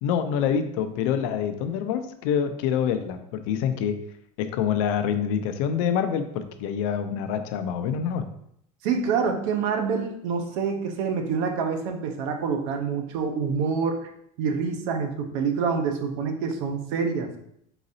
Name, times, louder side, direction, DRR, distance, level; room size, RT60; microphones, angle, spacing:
voice 1, 0.0-4.0 4.4-8.2, left 8 dB, 75° left, 8 dB, 0.5 m, -26 dB
voice 2, 8.8-14.0 14.4-17.4, right 5 dB, 75° right, 5 dB, 0.7 m, -26 dB
4.0 x 3.9 x 2.6 m, 0.71 s
cardioid pair, 165°, 17 cm